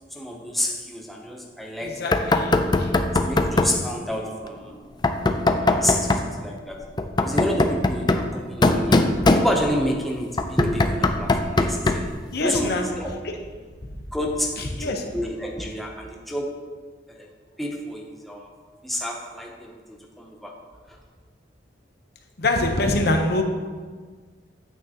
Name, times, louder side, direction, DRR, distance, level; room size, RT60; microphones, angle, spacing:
voice 1, 0.1-2.1 2.5-2.8 3.2-4.7 5.4-6.8 7.2-12.1 12.4-13.1 14.1-16.5 17.1-17.3 17.6-18.5 18.8-19.7 20.2-20.6, equal, ahead, -1 dB, 0.8 m, -29 dB
voice 2, 1.8-2.9 12.3-12.9 13.2-13.4 13.8-13.9 14.6-15.2 22.4-23.4, left 2 dB, 55° left, 4 dB, 0.9 m, -25 dB
Knock, 2.1-3.8 5.0-6.3 7.0-9.9 10.4-12.2, left 2 dB, 25° left, 0.4 m, -21 dB
9.3 x 8.4 x 2.9 m, 1.5 s
head